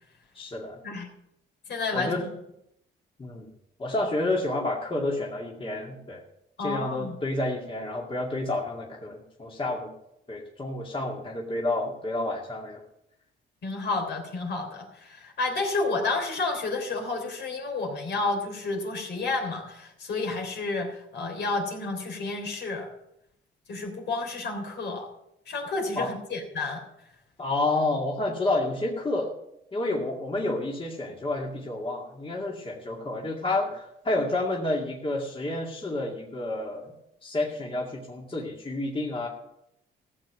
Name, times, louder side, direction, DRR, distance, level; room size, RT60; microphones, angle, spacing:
voice 1, 0.3-0.8 1.9-2.2 3.2-3.5 3.8-6.2 6.6-9.9 10.3-12.8 26.0-26.1 27.4-29.3 29.7-36.9 37.2-39.3, left 2 dB, 25° left, -2 dB, 2.3 m, -29 dB
voice 2, 1.7-2.3 6.6-7.1 13.6-22.9 23.7-25.1 25.5-26.8, left 3 dB, 60° left, 2 dB, 3.4 m, -30 dB
15.0 x 7.4 x 6.1 m, 0.80 s
cardioid pair, 90°, 20 cm